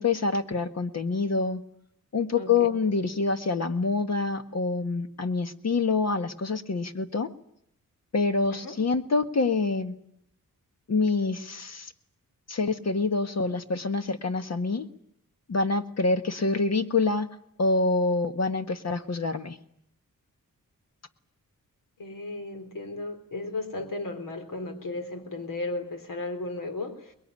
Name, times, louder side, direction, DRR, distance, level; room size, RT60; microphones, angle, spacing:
voice 1, 0.0-1.6 2.1-7.3 8.1-9.9 10.9-11.9 12.5-14.9 15.5-17.3 17.6-19.6, left 3 dB, 50° left, 9 dB, 1.6 m, -26 dB
voice 2, 22.0-27.1, left 2 dB, 75° left, 8 dB, 3.7 m, -35 dB
24.0 x 21.5 x 9.8 m, 0.74 s
wide cardioid pair, 130°, 33 cm